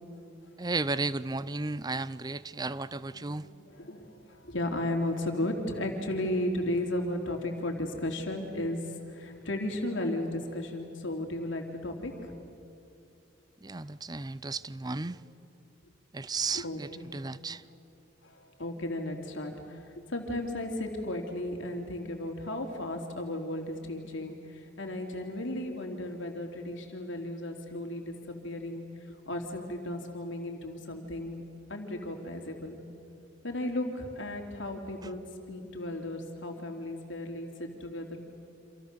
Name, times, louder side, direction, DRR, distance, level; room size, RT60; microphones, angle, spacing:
voice 1, 0.6-3.5 13.6-15.2 16.1-17.6, right 3 dB, 20° right, 17 dB, 0.5 m, -34 dB
voice 2, 3.1-12.3 16.5-17.0 18.2-28.8 29.3-31.4 31.7-32.8 33.4-35.2 35.5-38.2, left 1 dB, 60° left, 3 dB, 3.3 m, -35 dB
29.0 x 27.0 x 6.9 m, 2.7 s
head